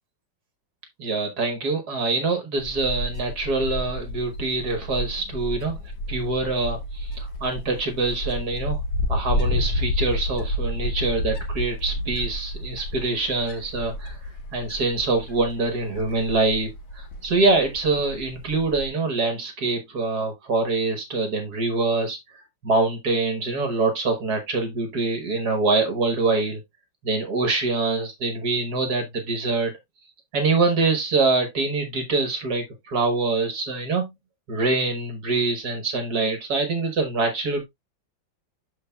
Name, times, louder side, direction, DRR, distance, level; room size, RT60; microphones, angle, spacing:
voice 1, 1.0-5.8 6.1-8.8 9.1-14.2 14.5-22.2 22.6-26.6 27.0-29.7 30.3-34.1 34.5-37.6, right 3 dB, 55° right, 1.7 m, -24 dB
Wind, 2.6-18.9, left 1 dB, 70° left, 1.9 m, -30 dB
12.5 x 4.3 x 2.3 m
omnidirectional pair, 2.1 m